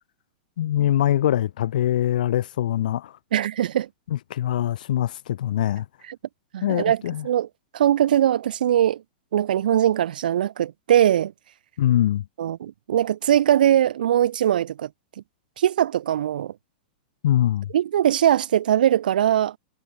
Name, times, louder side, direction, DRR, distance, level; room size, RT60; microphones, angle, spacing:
voice 1, 0.6-3.2 4.1-5.8 6.6-7.3 11.8-12.2 17.2-17.7, left 12 dB, 65° left, 1.6 m, -23 dB
voice 2, 3.3-3.9 6.1-6.2 6.5-7.5 7.7-9.0 9.3-11.3 12.4-14.9 15.6-16.5 17.7-19.6, right 11 dB, 70° right, 3.7 m, -21 dB
supercardioid pair, 170°, 5 cm